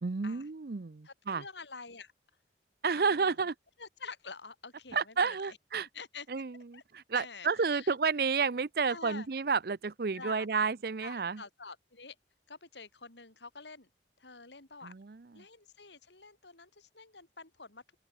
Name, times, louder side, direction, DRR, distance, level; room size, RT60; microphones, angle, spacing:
voice 1, 0.0-1.4 2.8-3.5 4.9-5.9 6.3-11.4 14.8-15.4, right 5 dB, 60° right, 0.6 m, -31 dB
voice 2, 1.0-2.1 3.0-3.4 3.8-5.6 5.9-6.4 6.7-6.8 7.1-8.0 8.9-9.3 10.1-10.5 11.0-12.2 12.5-13.9 14.2-14.9 15.3-17.8, left 4 dB, 85° left, 5.2 m, -48 dB
open air
head